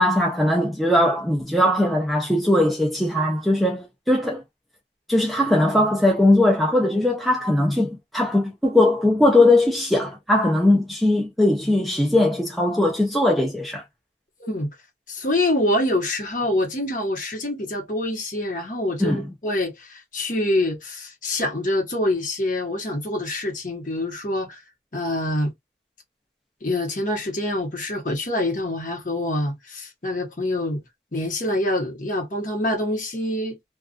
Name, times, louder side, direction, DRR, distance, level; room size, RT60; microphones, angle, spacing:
voice 1, 0.0-4.4 5.1-13.8 19.0-19.2, left 1 dB, ahead, 0.5 m, -20 dB
voice 2, 15.1-24.6 24.9-25.5 26.6-30.8 31.1-33.6, left 1 dB, 45° left, 1.0 m, -25 dB
2.3 x 2.3 x 2.5 m
head